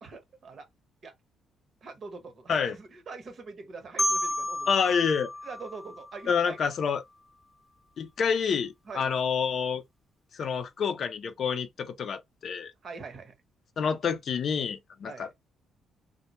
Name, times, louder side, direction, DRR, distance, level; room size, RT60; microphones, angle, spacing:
voice 1, 0.0-0.7 1.0-1.1 1.8-5.0 5.4-6.6 8.8-9.1 12.8-13.3 15.0-15.3, right 4 dB, 55° right, 0.8 m, -43 dB
Marimba xylophone, 4.0-6.8, left 1 dB, ahead, 0.7 m, -32 dB
voice 2, 4.7-5.3 6.3-7.0 8.0-9.8 10.4-12.7 13.8-15.3, left 6 dB, 60° left, 0.4 m, -28 dB
2.1 x 2.1 x 2.8 m
cardioid pair, 90°, 0 cm